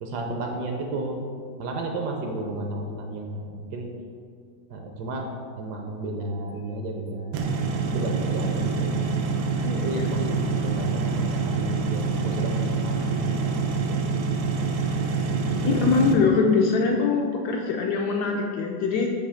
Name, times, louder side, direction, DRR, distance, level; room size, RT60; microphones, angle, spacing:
voice 1, 0.0-1.3 1.6-3.9 4.7-5.3 5.6-9.0 9.7-14.1 15.3-15.7, right 2 dB, 70° right, 2 dB, 1.1 m, -33 dB
sound 1, 7.3-16.1, right 4 dB, 85° right, 1.4 m, -26 dB
voice 2, 9.6-10.1 15.6-19.1, left 5 dB, 70° left, 0 dB, 1.0 m, -23 dB
7.3 x 2.9 x 4.9 m, 2.1 s
omnidirectional pair, 2.1 m